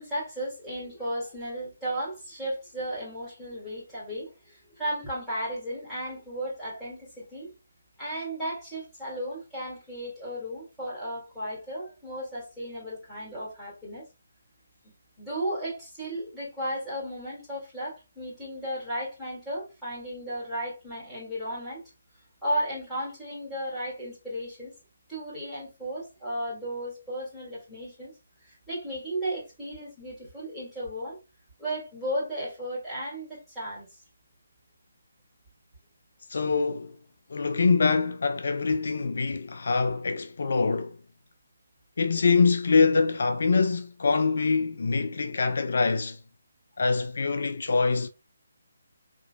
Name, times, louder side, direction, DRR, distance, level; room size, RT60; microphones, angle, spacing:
voice 1, 0.0-7.5 8.0-14.1 14.8-21.8 22.4-24.7 25.1-28.1 28.4-31.2 31.6-34.0, right 1 dB, ahead, 2.2 m, -34 dB
voice 2, 36.3-37.0 37.3-41.0 42.0-46.2 46.8-48.1, left 4 dB, 55° left, 0.4 m, -24 dB
3.9 x 2.9 x 2.2 m
figure-of-eight pair, 145°, 0 cm